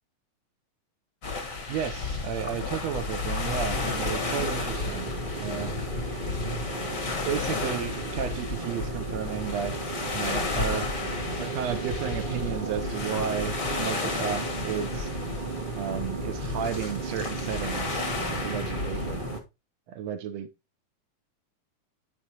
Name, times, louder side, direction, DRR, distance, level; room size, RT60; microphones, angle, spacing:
sound 1, 1.2-19.4, left 4 dB, 45° left, 1.1 m, -33 dB
voice 1, 1.7-5.1 5.4-5.7 7.2-9.7 10.1-10.9 11.4-15.1 15.8-19.2 19.9-20.5, right 8 dB, 70° right, 1.8 m, -33 dB
sound 2, 3.7-19.4, right 3 dB, 50° right, 0.6 m, -35 dB
11.5 x 4.8 x 2.8 m
omnidirectional pair, 3.4 m